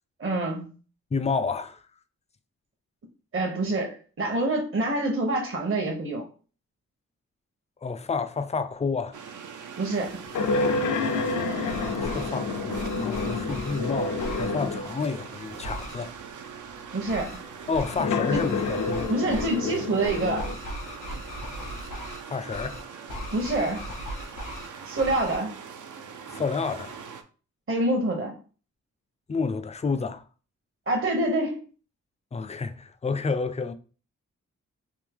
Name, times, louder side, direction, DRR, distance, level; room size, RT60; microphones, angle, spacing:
voice 1, 0.2-0.8 3.3-6.2 9.8-10.2 16.9-17.4 18.3-18.4 19.1-20.5 23.3-23.8 24.8-25.5 27.7-28.3 30.9-31.6, right 2 dB, 40° right, 0.8 m, -26 dB
voice 2, 1.1-1.8 7.8-9.2 11.9-16.1 17.7-19.1 22.3-22.8 26.3-27.0 29.3-30.2 32.3-33.7, left 4 dB, 20° left, 0.4 m, -30 dB
sound 1, 9.1-27.2, right 6 dB, 70° right, 0.5 m, -42 dB
sound 2, 10.3-15.0 15.7-15.8 17.9-20.5, left 3 dB, 70° left, 0.5 m, -28 dB
sound 3, 11.6-12.3 12.7-13.8 14.2-14.5 15.6-15.9 17.1-17.4 17.7-18.0 18.3-19.6 20.0-22.2 22.5-22.8 23.1-24.7 25.0-25.4, equal, 85° left, 1.3 m, -37 dB
3.5 x 2.7 x 3.5 m
cardioid pair, 70°, 31 cm